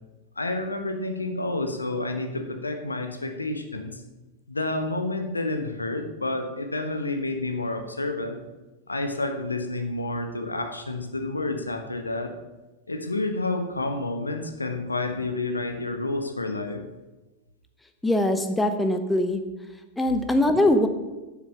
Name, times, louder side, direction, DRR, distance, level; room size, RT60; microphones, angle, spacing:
voice 1, 0.4-4.0 4.5-8.4 8.9-12.3 12.9-16.8, left 2 dB, 80° left, 6 dB, 1.1 m, -29 dB
voice 2, 18.0-19.4 20.0-20.9, left 1 dB, 5° left, 7 dB, 0.9 m, -22 dB
10.5 x 7.4 x 5.6 m, 1.1 s
figure-of-eight pair, 90°, 0 cm